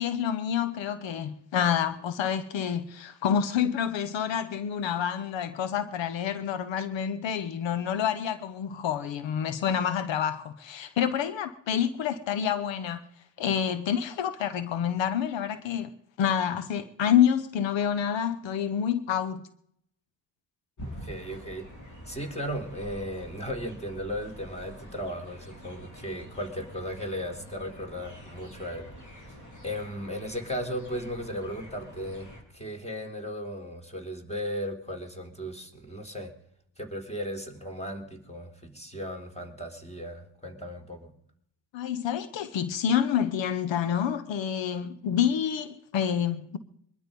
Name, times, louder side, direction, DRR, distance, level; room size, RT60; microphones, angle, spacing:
voice 1, 0.0-13.0 13.4-15.9 16.2-19.4 41.7-46.6, left 8 dB, 85° left, 1.0 m, -28 dB
sound 1, 20.8-32.4, equal, 40° left, 5.6 m, -46 dB
voice 2, 21.0-21.7 22.1-28.9 29.6-32.3 32.5-36.3 36.8-41.1, equal, 15° left, 3.5 m, -36 dB
22.0 x 12.0 x 5.3 m
cardioid pair, 65°, 44 cm